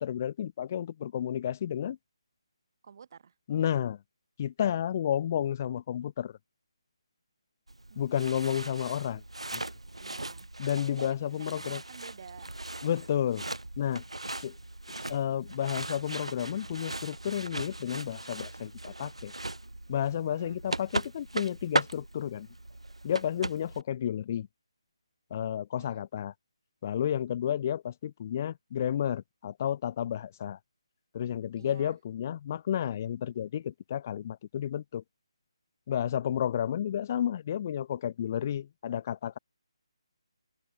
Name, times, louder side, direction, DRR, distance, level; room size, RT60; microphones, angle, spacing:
voice 1, 0.0-2.0 3.5-4.0 4.4-6.4 8.0-9.2 9.5-9.6 10.6-11.8 12.8-13.4 13.8-14.0 14.4-14.6 15.1-19.3 19.9-22.5 23.0-24.5 25.3-26.3 26.8-30.6 31.1-35.0 35.9-39.4, left 10 dB, 30° left, 0.5 m, -31 dB
voice 2, 2.8-3.4 9.9-10.5 11.1-12.5 20.3-20.6 25.8-25.9 31.6-32.0, right 6 dB, 40° right, 3.6 m, -51 dB
sound 1, 7.7-23.8, right 2 dB, 80° right, 0.4 m, -38 dB
open air
figure-of-eight pair, 150°, 3 cm